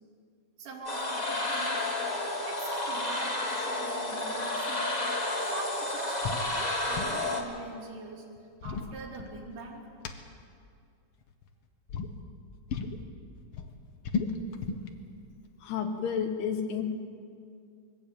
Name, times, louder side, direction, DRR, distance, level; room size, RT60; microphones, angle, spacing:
voice 1, 0.6-1.9 2.4-5.0 5.4-8.2 8.6-9.9, right 3 dB, 75° right, -3 dB, 4.4 m, -42 dB
sound 1, 0.8-7.4, left 2 dB, 20° left, 1.0 m, -31 dB
sound 2, 6.2-6.5 6.7-7.2 8.4-9.6 10.0-10.1 11.2-11.5 11.9-12.1 12.7-13.0 13.4-14.9, left 5 dB, 60° left, 1.5 m, -34 dB
voice 2, 15.6-16.8, left 7 dB, 75° left, 4 dB, 2.9 m, -31 dB
21.5 x 15.0 x 8.9 m, 2.3 s
omnidirectional pair, 3.9 m